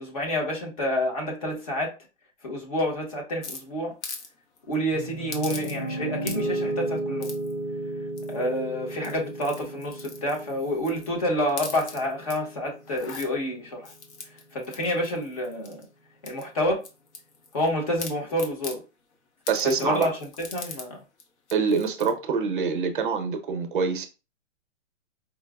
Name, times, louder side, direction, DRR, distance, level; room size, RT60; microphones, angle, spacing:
voice 1, 0.0-1.9 2.4-3.9 4.7-7.3 8.3-13.9 14.5-15.8 16.2-16.8 17.5-18.8 19.6-20.1 20.5-21.0, equal, 30° left, 0.9 m, -28 dB
sound 1, 3.4-4.3 4.6-4.8 5.3-5.9 6.2-6.6 7.2-7.5 8.2-8.6 8.9-11.1 11.5-12.4 12.8-13.3 13.8-15.9 16.3-17.7 18.0-18.8 19.5-20.9 21.2-21.3 21.5-22.1, left 4 dB, 60° left, 0.8 m, -40 dB
Piano, 4.9-13.0, right 2 dB, 10° left, 0.6 m, -34 dB
voice 2, 19.5-20.1 21.5-24.1, right 5 dB, 40° right, 0.6 m, -25 dB
4.6 x 2.0 x 2.3 m
hypercardioid pair, 175°, 38 cm